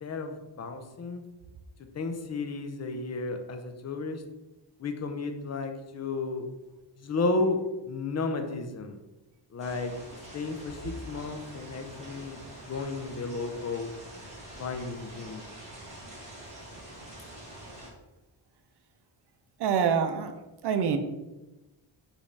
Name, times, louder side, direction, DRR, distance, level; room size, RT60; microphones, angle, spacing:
voice 1, 0.0-1.2 1.9-4.2 4.8-6.5 7.0-7.6 7.9-9.0 9.5-9.9 10.3-13.9 14.6-15.4, left 3 dB, 35° left, 6 dB, 0.5 m, -33 dB
sound 1, 9.6-17.9, right 1 dB, 15° right, 1.4 m, -46 dB
voice 2, 19.6-20.3 20.6-21.0, right 7 dB, 60° right, 7 dB, 0.6 m, -25 dB
5.2 x 2.6 x 3.2 m, 1.0 s
wide cardioid pair, 140°, 46 cm